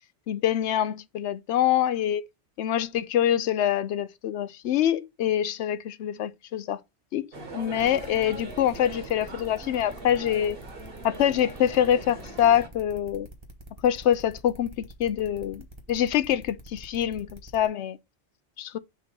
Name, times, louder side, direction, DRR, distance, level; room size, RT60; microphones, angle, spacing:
voice 1, 0.3-2.2 2.6-6.8 7.1-7.3 7.5-10.6 11.0-13.3 13.8-14.7 15.0-18.0 18.6-18.8, left 10 dB, 75° left, 0.9 m, -25 dB
sound 1, 7.3-12.7, right 3 dB, 55° right, 1.6 m, -41 dB
sound 2, 7.8-17.7, right 1 dB, 25° right, 1.2 m, -46 dB
6.2 x 2.9 x 5.2 m
omnidirectional pair, 1.2 m